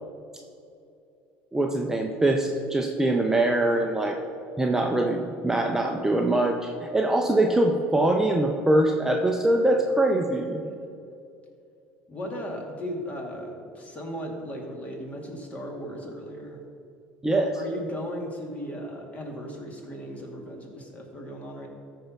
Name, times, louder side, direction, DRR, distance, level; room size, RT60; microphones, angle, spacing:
voice 1, 1.5-4.2 4.6-10.6 17.2-17.6, right 1 dB, 10° right, 2 dB, 0.7 m, -23 dB
voice 2, 12.1-16.6 17.6-21.7, equal, 25° left, 1 dB, 2.3 m, -36 dB
13.5 x 4.6 x 5.8 m, 2.5 s
supercardioid pair, 100°, 5 cm